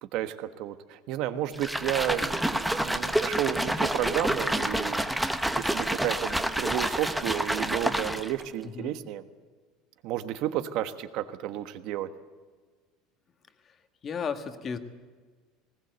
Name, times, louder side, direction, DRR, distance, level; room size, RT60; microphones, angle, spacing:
voice 1, 0.0-5.2 5.6-9.3 10.0-12.1, right 12 dB, 50° right, 11 dB, 1.3 m, -32 dB
sound 1, 1.5-8.4, right 1 dB, 5° right, 0.9 m, -28 dB
voice 2, 14.0-14.8, left 6 dB, 25° left, 8 dB, 1.5 m, -33 dB
20.0 x 20.0 x 8.0 m, 1.5 s
cardioid pair, 170°, 0 cm